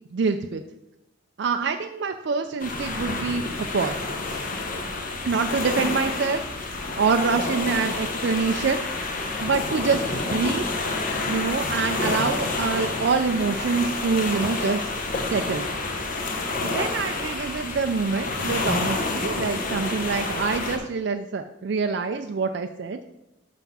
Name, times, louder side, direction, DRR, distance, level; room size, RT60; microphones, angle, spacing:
voice 1, 0.1-0.6 1.4-4.0 5.2-6.4 6.9-8.8 9.4-10.6 11.3-14.9 15.3-15.7 16.6-23.0, right 4 dB, 60° right, 6 dB, 0.4 m, -25 dB
sound 1, 2.6-20.8, left 3 dB, 45° left, 1.0 m, -29 dB
6.1 x 5.8 x 5.4 m, 0.90 s
head